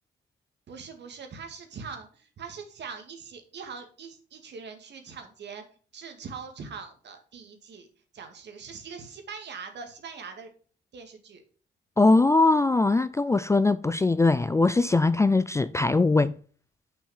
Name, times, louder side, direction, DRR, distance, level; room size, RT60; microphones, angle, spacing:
voice 1, 0.7-5.6 5.9-7.9 8.1-10.5 10.9-11.4, right 5 dB, 60° right, 2.0 m, -42 dB
voice 2, 12.0-16.3, left 3 dB, 15° left, 0.3 m, -21 dB
6.3 x 5.5 x 6.4 m
cardioid pair, 90°, 20 cm